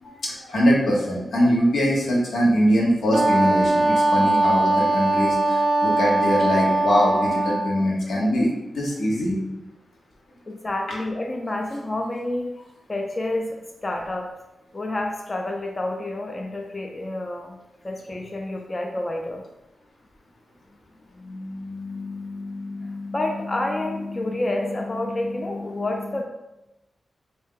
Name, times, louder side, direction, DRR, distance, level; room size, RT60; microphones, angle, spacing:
voice 1, 0.0-9.4, equal, 90° left, -3 dB, 1.0 m, -22 dB
Wind instrument woodwind instrument, 3.1-7.8, right 2 dB, 50° right, 0.3 m, -21 dB
voice 2, 10.5-12.5 12.9-13.6 13.8-14.3 14.7-17.6 17.8-19.4 21.1-26.2, left 2 dB, 30° left, 2 dB, 0.4 m, -29 dB
3.3 x 2.7 x 3.7 m, 0.96 s
wide cardioid pair, 90°, 0 cm